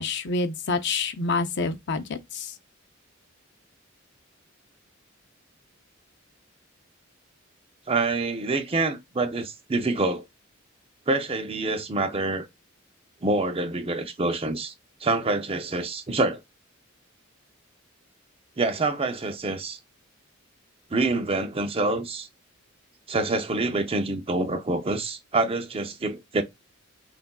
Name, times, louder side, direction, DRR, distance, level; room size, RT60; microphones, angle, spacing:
voice 1, 0.0-2.5, left 3 dB, 55° left, 0.6 m, -27 dB
voice 2, 7.9-10.2 11.1-12.5 13.2-14.7 15.0-16.4 18.6-19.8 20.9-22.3 23.1-26.4, right 2 dB, 30° right, 0.6 m, -26 dB
5.8 x 2.6 x 2.3 m
head